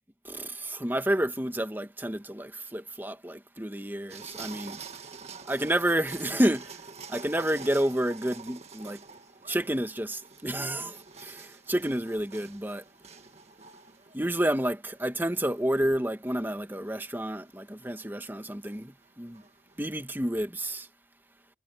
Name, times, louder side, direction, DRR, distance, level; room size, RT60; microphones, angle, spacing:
voice 1, 0.2-4.8 5.5-6.8 7.1-9.0 9.5-12.8 14.1-19.4 19.8-20.9, right 1 dB, 10° right, 1.4 m, -30 dB
sound 1, 4.1-19.8, right 5 dB, 40° right, 1.7 m, -47 dB
head